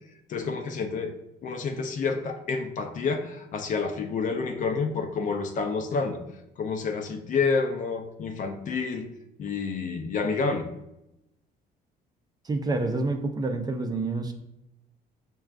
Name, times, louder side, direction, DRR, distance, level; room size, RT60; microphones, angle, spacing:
voice 1, 0.3-1.1 1.4-6.2 6.6-9.1 9.4-10.7, left 4 dB, 50° left, 6 dB, 0.5 m, -29 dB
voice 2, 12.4-14.3, right 3 dB, 25° right, 4 dB, 0.4 m, -28 dB
6.2 x 2.3 x 2.4 m, 0.86 s
cardioid pair, 110°, 17 cm